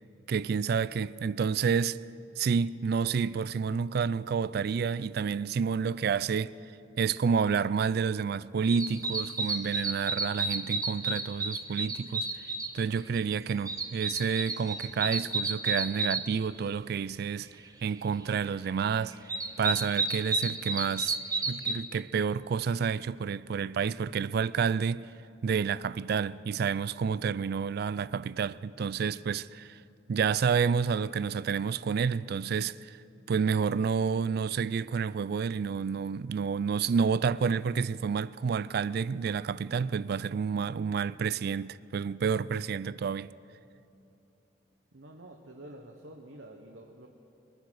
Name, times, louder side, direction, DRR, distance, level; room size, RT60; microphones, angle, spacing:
voice 1, 0.3-2.0 2.4-6.6 7.0-12.4 12.7-17.6 17.8-19.2 19.6-21.2 21.5-25.1 25.4-29.8 30.1-33.0 33.3-43.3, right 6 dB, 55° right, 0.3 m, -29 dB
sound 1, 8.7-12.7 13.2-16.2 18.7-18.8 19.1-21.7, right 3 dB, 20° right, 0.8 m, -31 dB
voice 2, 44.9-47.1, right 1 dB, 80° right, 1.1 m, -48 dB
22.0 x 10.0 x 6.3 m
head